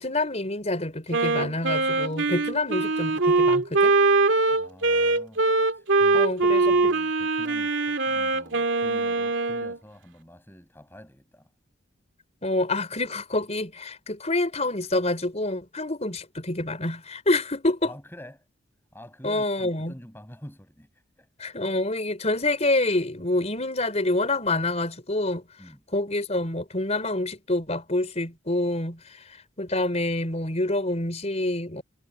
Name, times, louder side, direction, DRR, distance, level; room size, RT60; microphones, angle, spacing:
voice 1, 0.0-4.0 6.1-6.9 12.4-17.9 19.2-19.9 21.4-25.4 25.9-31.8, left 2 dB, 35° left, 4.7 m, -27 dB
Wind instrument woodwind instrument, 1.1-9.8, right 3 dB, 75° right, 2.3 m, -22 dB
voice 2, 4.5-5.4 5.7-11.5 17.8-18.5 18.9-21.5 25.6-25.8, equal, 10° left, 6.9 m, -47 dB
head